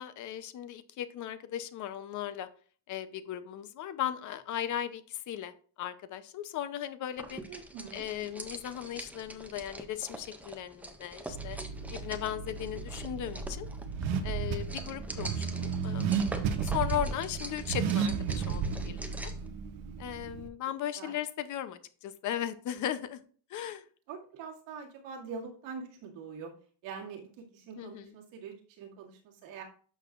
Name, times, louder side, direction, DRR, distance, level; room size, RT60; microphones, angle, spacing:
voice 1, 0.0-2.5 2.9-5.5 5.8-7.4 7.9-11.6 11.9-13.7 14.2-16.4 16.6-19.3 20.0-23.2 23.5-23.8 27.8-28.1, left 11 dB, 40° left, 12 dB, 0.6 m, -37 dB
sound 1, 7.2-19.5, right 1 dB, 5° right, 0.3 m, -45 dB
voice 2, 7.5-8.0 16.9-17.0 21.0-21.2 24.1-26.5 26.8-29.6, right 5 dB, 75° right, -1 dB, 2.3 m, -44 dB
Car / Accelerating revving vroom, 11.3-20.5, right 6 dB, 55° right, 0.9 m, -33 dB
11.0 x 6.4 x 2.4 m, 0.43 s
cardioid pair, 170°, 46 cm